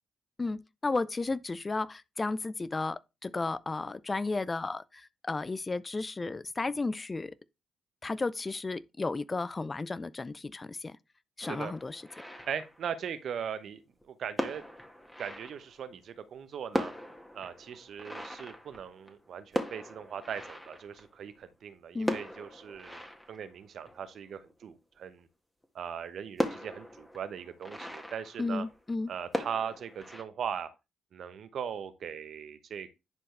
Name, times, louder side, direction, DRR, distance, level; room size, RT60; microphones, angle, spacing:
voice 1, 0.4-7.3 8.0-11.0 11.4-12.0 21.9-22.2 28.4-29.1, left 3 dB, 30° left, 0.4 m, -33 dB
sound 1, 11.4-13.2 14.0-14.1 14.4-16.1 16.4-16.5 16.7-21.5 22.0-24.6 25.2-25.3 25.6-25.7 26.4-29.0 29.3-30.2, left 1 dB, 10° left, 1.8 m, -39 dB
voice 2, 11.4-11.7 12.5-13.8 14.1-14.6 15.2-16.9 17.3-25.3 25.7-28.7 29.1-30.7 31.1-32.9, right 8 dB, 65° right, 1.0 m, -39 dB
10.5 x 4.6 x 3.3 m
hypercardioid pair, 45°, 0 cm